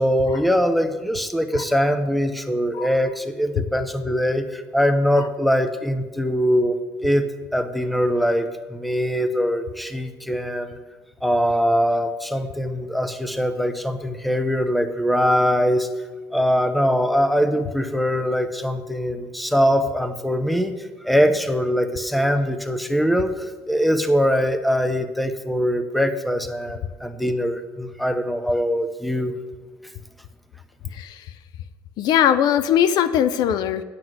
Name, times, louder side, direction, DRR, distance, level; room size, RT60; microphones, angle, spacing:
voice 1, 0.0-6.8 7.0-10.8 11.2-15.9 16.3-29.4, equal, ahead, 9 dB, 0.7 m, -22 dB
voice 2, 32.0-33.8, left 10 dB, 70° left, 13 dB, 0.5 m, -20 dB
9.2 x 6.0 x 7.8 m, 1.4 s
cardioid pair, 100°, 7 cm